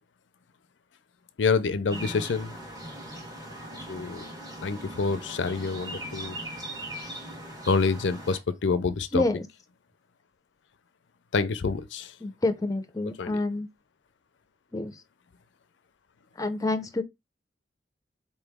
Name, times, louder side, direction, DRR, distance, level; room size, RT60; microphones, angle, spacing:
voice 1, 1.4-2.5 3.9-4.3 4.6-6.4 7.7-9.2 11.3-12.1 13.1-13.4, left 4 dB, 85° left, 0.5 m, -27 dB
sound 1, 1.9-8.4, right 1 dB, 20° right, 1.3 m, -40 dB
voice 2, 9.1-9.5 12.2-13.7 14.7-14.9 16.4-17.0, left 2 dB, 20° left, 0.6 m, -28 dB
4.3 x 3.0 x 3.5 m
head